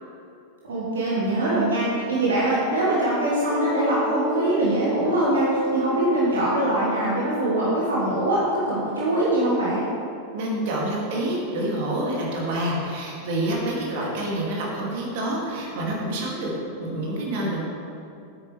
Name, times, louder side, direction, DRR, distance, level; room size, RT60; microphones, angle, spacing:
voice 1, 0.7-9.8, right 1 dB, 70° right, -7 dB, 1.7 m, -23 dB
sound 1, 3.5-9.0, right 1 dB, 40° left, 1.0 m, -31 dB
voice 2, 10.3-16.5 16.8-17.6, right 1 dB, 50° right, -3 dB, 2.3 m, -27 dB
10.0 x 8.9 x 3.2 m, 2.7 s
figure-of-eight pair, 90°, 0 cm